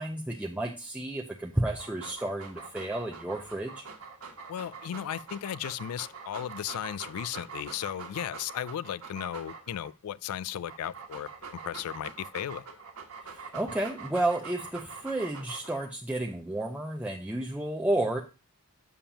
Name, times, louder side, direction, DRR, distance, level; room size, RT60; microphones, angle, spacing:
voice 1, 0.0-3.8 13.3-18.2, right 1 dB, 5° right, 0.5 m, -31 dB
Dog, 1.7-9.9 10.5-15.9, right 5 dB, 85° right, 1.3 m, -44 dB
voice 2, 4.5-11.3 11.6-12.7, left 10 dB, 85° left, 0.3 m, -35 dB
7.2 x 6.9 x 2.8 m
head